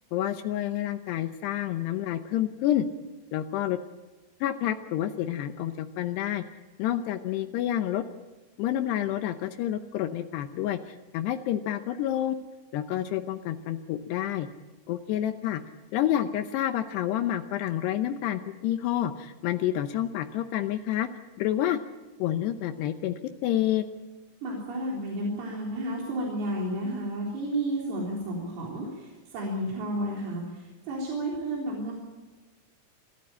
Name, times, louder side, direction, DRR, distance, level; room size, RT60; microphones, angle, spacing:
voice 1, 0.1-2.9 3.3-3.8 4.4-6.4 6.8-8.0 8.6-12.4 12.7-14.5 14.9-15.6 15.9-21.1 21.4-21.8 22.2-23.1 23.4-23.8, left 12 dB, 85° left, 8 dB, 2.4 m, -28 dB
voice 2, 24.4-31.9, right 1 dB, 80° right, -3 dB, 6.4 m, -32 dB
27.0 x 13.5 x 8.9 m, 1.2 s
omnidirectional pair, 5.9 m